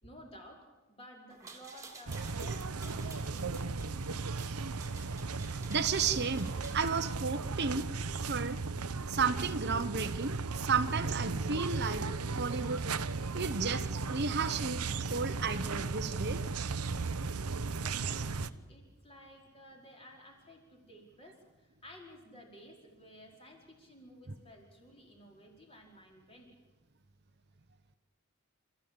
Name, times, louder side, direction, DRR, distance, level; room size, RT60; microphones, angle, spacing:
voice 1, 0.0-3.9 14.9-15.2 17.8-26.5, equal, 25° left, 1 dB, 4.9 m, -54 dB
sound 1, 1.3-6.9, right 4 dB, 15° right, 2.7 m, -52 dB
sound 2, 2.1-18.5, right 4 dB, 90° right, 0.9 m, -36 dB
voice 2, 5.5-7.9 8.2-8.6 9.1-12.0 12.4-12.8 13.3-14.8 15.1-16.4, right 5 dB, 50° right, 9 dB, 1.0 m, -33 dB
29.5 x 14.5 x 8.7 m, 1.2 s
head